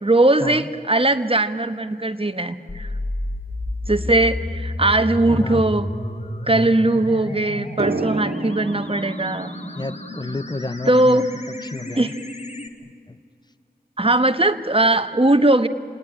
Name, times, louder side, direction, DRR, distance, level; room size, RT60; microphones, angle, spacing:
voice 1, 0.0-2.9 3.9-5.9 6.5-9.5 10.9-11.3 12.0-12.1 14.0-15.7, right 2 dB, 35° right, 10 dB, 1.3 m, -19 dB
sound 1, 2.7-12.7, left 1 dB, 45° left, 2.1 m, -31 dB
voice 2, 5.3-5.6 9.8-11.2 11.6-12.1 13.1-13.2, left 2 dB, 25° left, 16 dB, 0.6 m, -31 dB
Drum, 7.8-11.1, right 3 dB, 65° right, 1.8 m, -31 dB
28.0 x 18.5 x 10.0 m, 2.3 s
wide cardioid pair, 55°, 17 cm